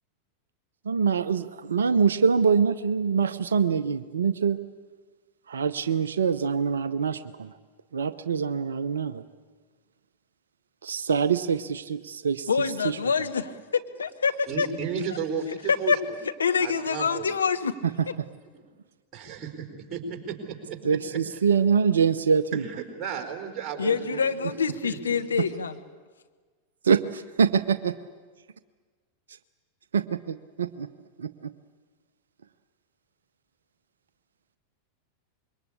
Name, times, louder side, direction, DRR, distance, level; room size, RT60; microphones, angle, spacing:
voice 1, 0.8-4.6 5.5-7.5 7.9-9.2 10.8-12.5 12.8-13.0 17.8-18.1 20.8-22.6 25.4-25.5 26.8-27.9 29.9-30.9 31.2-31.5, right 6 dB, 70° right, 13 dB, 0.7 m, -24 dB
voice 2, 12.5-14.7 15.7-16.0 16.4-17.7 23.8-25.8, left 6 dB, 70° left, 7 dB, 1.3 m, -26 dB
voice 3, 14.5-15.4 15.8-15.9 16.6-17.3 19.1-20.8 21.1-21.2 22.5-24.5 24.8-25.2, right 7 dB, 30° right, 4 dB, 4.3 m, -34 dB
26.0 x 22.5 x 8.6 m, 1.4 s
figure-of-eight pair, 90°, 0 cm